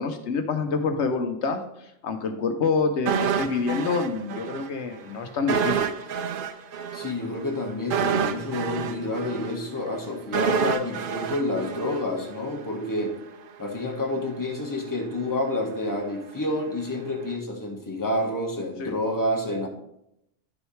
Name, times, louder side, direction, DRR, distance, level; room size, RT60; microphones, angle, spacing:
voice 1, 0.0-5.9 18.8-18.9, left 4 dB, 75° left, 7 dB, 1.0 m, -27 dB
sound 1, 3.1-4.7 5.0-5.1 5.5-12.6 12.9-13.0, right 7 dB, 60° right, 0.7 m, -28 dB
voice 2, 6.9-13.1 13.6-19.7, left 1 dB, 15° left, 0 dB, 1.3 m, -29 dB
10.5 x 6.2 x 3.2 m, 0.80 s
omnidirectional pair, 1.2 m